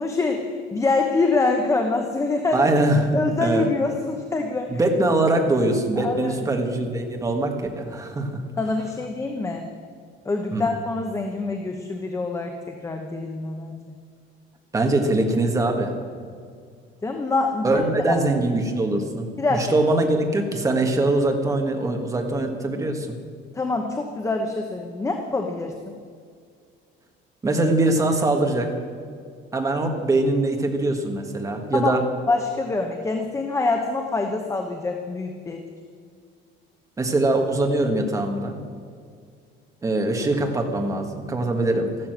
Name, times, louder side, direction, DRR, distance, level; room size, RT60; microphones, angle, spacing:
voice 1, 0.0-2.7 3.1-4.7 6.0-6.5 8.6-9.7 10.2-13.8 17.0-18.2 19.4-19.7 23.5-26.0 31.7-31.9 32.3-35.6, left 3 dB, 15° left, 3 dB, 0.9 m, -25 dB
voice 2, 2.5-3.7 4.7-8.4 10.5-10.6 14.7-16.0 17.6-23.1 27.4-28.7 29.5-32.0 37.0-38.6 39.8-41.9, right 2 dB, 15° right, 3 dB, 1.6 m, -22 dB
14.0 x 12.0 x 7.9 m, 2.1 s
cardioid pair, 170°, 21 cm